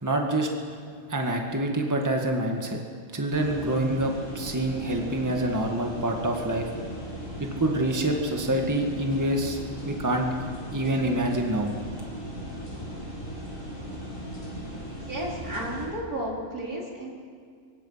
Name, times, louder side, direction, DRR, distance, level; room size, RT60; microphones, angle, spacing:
voice 1, 0.0-0.5 1.1-2.8 3.1-6.7 7.4-9.6 9.9-10.3 10.7-11.7, right 1 dB, 10° right, 2 dB, 1.9 m, -26 dB
sound 1, 3.3-15.9, equal, 60° left, 6.4 m, -38 dB
voice 2, 15.1-17.1, right 1 dB, 80° right, -3 dB, 4.9 m, -33 dB
24.5 x 24.0 x 5.8 m, 2.1 s
omnidirectional pair, 1.5 m